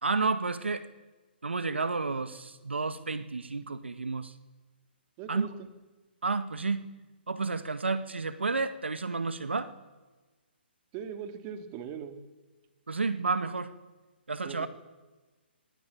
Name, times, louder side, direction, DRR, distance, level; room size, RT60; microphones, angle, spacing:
voice 1, 0.0-0.9 1.4-4.3 5.3-5.5 6.2-6.8 7.3-9.7 12.9-13.7 14.3-14.7, right 4 dB, 85° right, 11 dB, 2.0 m, -31 dB
voice 2, 5.2-5.7 10.9-12.2 14.4-14.7, right 8 dB, 30° right, 7 dB, 3.1 m, -40 dB
25.0 x 22.0 x 8.7 m, 1.3 s
hypercardioid pair, 140°, 6 cm